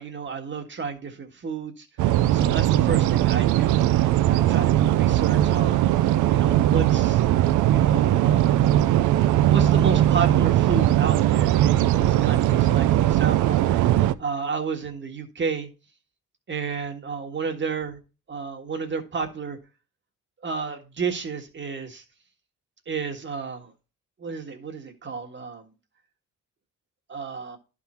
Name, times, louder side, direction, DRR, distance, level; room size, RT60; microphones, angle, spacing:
voice 1, 0.0-1.8 2.3-3.8 4.3-5.9 6.3-7.2 7.7-8.5 9.4-15.7 16.5-18.0 18.3-19.6 20.4-22.0 22.9-23.7 24.2-25.6 27.1-27.6, right 5 dB, 40° right, 1.5 m, -31 dB
sound 1, 2.0-14.1, right 13 dB, 80° right, 0.5 m, -20 dB
11.0 x 3.7 x 4.3 m
cardioid pair, 90°, 30 cm